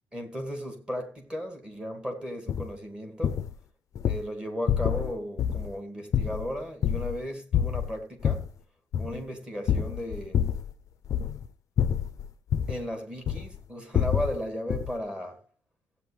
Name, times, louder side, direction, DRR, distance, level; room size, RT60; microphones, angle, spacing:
voice 1, 0.1-3.4 4.0-8.5 9.0-10.4 12.7-15.4, equal, 10° right, 2.2 m, -35 dB
sound 1, 2.5-2.7 3.2-3.5 3.9-4.2 4.7-5.1 5.4-5.7 6.1-7.2 7.5-8.5 8.9-9.2 9.7-10.7 11.0-11.5 11.8-12.8 13.3-13.6 13.9-14.4 14.7-15.0, left 9 dB, 40° left, 0.6 m, -27 dB
16.0 x 8.5 x 3.3 m
cardioid pair, 180°, 8 cm